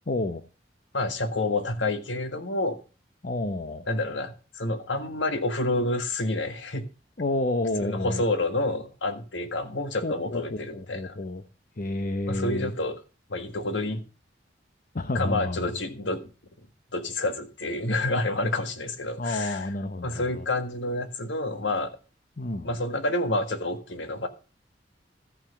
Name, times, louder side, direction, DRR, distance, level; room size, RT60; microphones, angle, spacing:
voice 1, 0.1-0.4 3.2-3.8 7.2-8.2 10.0-11.4 11.8-12.7 14.9-15.7 19.2-20.4 22.4-22.8, left 2 dB, 50° left, 0.9 m, -30 dB
voice 2, 0.9-2.8 3.9-6.9 7.8-11.2 12.3-13.0 13.3-14.0 15.1-16.3 16.9-19.7 20.0-22.0 22.6-24.3, left 2 dB, 90° left, 1.7 m, -28 dB
14.0 x 5.9 x 7.0 m
head